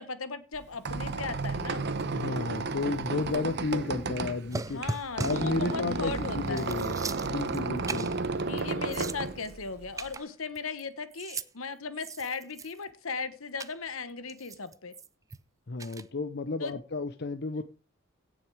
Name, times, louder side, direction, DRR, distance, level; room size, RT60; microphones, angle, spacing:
voice 1, 0.0-1.9 4.7-6.7 8.5-14.9 16.6-16.8, left 4 dB, 70° left, 12 dB, 1.3 m, -37 dB
Squeak, 0.5-10.1, right 3 dB, 50° right, 0.9 m, -33 dB
voice 2, 2.1-4.8 5.2-7.0 7.3-8.1 15.7-17.6, left 3 dB, 50° left, 9 dB, 0.7 m, -32 dB
sound 1, 4.5-5.5 6.1-6.2 6.5-7.6 7.9-8.2 8.6-8.7 8.9-9.5 10.0-10.8 11.1-11.5 11.9-12.9 13.6-13.7 14.3-15.4 15.8-16.0, right 3 dB, 15° right, 0.5 m, -38 dB
16.5 x 6.3 x 4.8 m, 0.35 s
head